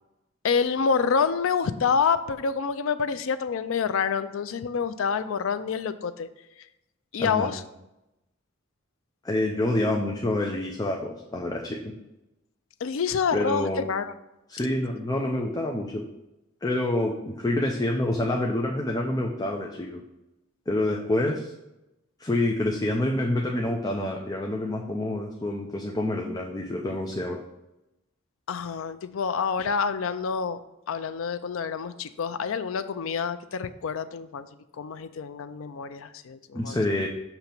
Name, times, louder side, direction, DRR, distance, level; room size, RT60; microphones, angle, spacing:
voice 1, 0.4-6.3 7.1-7.6 12.8-14.1 28.5-30.6 30.9-34.5 34.8-36.8, left 6 dB, 70° left, 12 dB, 0.4 m, -27 dB
voice 2, 7.2-7.5 9.2-11.9 13.3-13.9 14.5-16.0 16.6-20.0 20.7-21.5 22.2-27.4 36.5-37.1, left 1 dB, 20° left, 0 dB, 0.5 m, -27 dB
6.8 x 2.9 x 5.9 m, 0.92 s
head